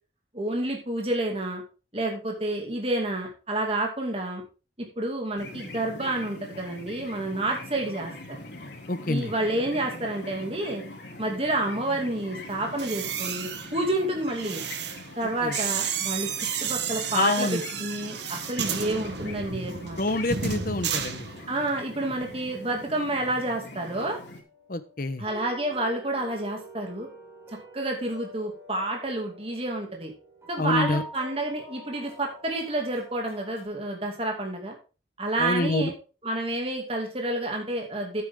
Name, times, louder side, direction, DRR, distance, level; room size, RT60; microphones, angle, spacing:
voice 1, 0.3-1.6 1.9-4.4 4.8-8.1 9.1-10.8 11.2-14.6 15.2-16.3 16.6-20.0 21.5-24.2 25.2-27.1 27.5-30.1 30.5-34.7 35.2-35.9 36.2-38.2, right 1 dB, 30° right, 1 dB, 2.5 m, -29 dB
sound 1, 5.4-24.4, left 2 dB, 75° left, 3.1 m, -43 dB
voice 2, 8.9-9.3 15.4-15.6 17.1-17.6 20.0-21.3 24.7-25.2 30.6-31.0 35.4-35.9, left 2 dB, 50° left, 12 dB, 1.0 m, -26 dB
sound 2, 12.7-21.8 22.0-22.4, right 7 dB, 70° right, 1.3 m, -32 dB
sound 3, 23.0-33.6, equal, 15° right, 5.8 m, -46 dB
11.5 x 9.3 x 3.8 m, 0.34 s
head